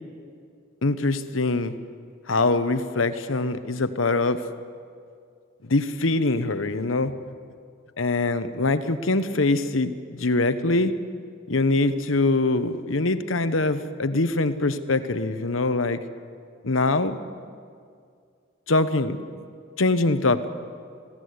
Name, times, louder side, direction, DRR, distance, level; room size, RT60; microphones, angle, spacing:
voice 1, 0.8-1.7 2.3-4.4 5.6-7.1 8.0-9.9 10.2-11.0 11.5-16.0 16.6-17.2 18.7-19.2 19.8-20.5, left 2 dB, 85° left, 11 dB, 1.1 m, -23 dB
21.5 x 16.5 x 9.6 m, 2.2 s
head